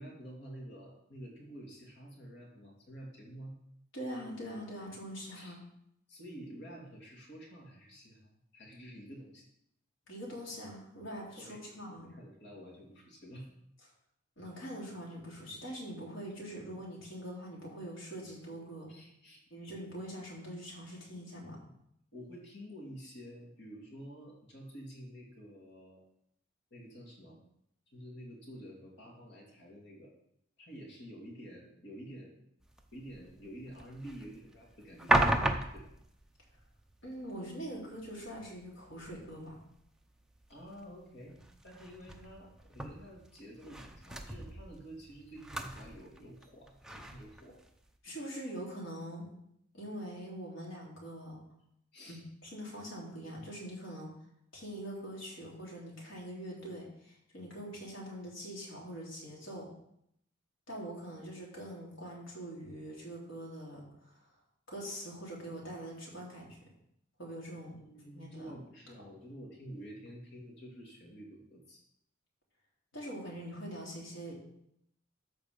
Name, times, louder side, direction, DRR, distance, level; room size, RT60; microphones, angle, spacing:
voice 1, 0.0-3.6 5.3-5.6 6.1-9.5 11.4-13.5 18.9-19.4 22.1-26.0 26.7-27.4 27.9-30.1 30.6-32.3 32.9-35.9 40.5-41.4 41.6-47.6 51.9-52.2 67.5-71.8, equal, 60° left, -3 dB, 2.7 m, -49 dB
voice 2, 3.9-5.6 10.1-12.1 14.4-18.9 19.5-21.6 37.0-39.6 48.0-49.3 49.7-51.4 52.1-54.2 54.5-59.7 60.7-64.2 64.7-66.6 67.2-67.7 68.1-68.5 72.9-74.3, equal, 80° left, -4 dB, 3.3 m, -43 dB
sound 1, 32.6-48.0, right 1 dB, 5° right, 0.7 m, -38 dB
13.5 x 4.8 x 5.2 m, 0.75 s
head